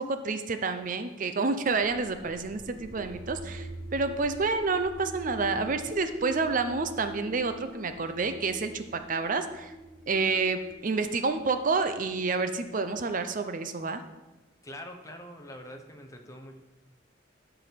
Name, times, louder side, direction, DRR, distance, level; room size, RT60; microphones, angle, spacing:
voice 1, 0.0-9.7 10.1-14.0, right 4 dB, 40° right, 9 dB, 0.5 m, -29 dB
sound 1, 1.6-13.4, left 1 dB, 80° right, 1.5 m, -44 dB
voice 2, 14.6-16.6, left 1 dB, 15° left, 4 dB, 1.0 m, -44 dB
12.5 x 4.7 x 5.2 m, 1.1 s
head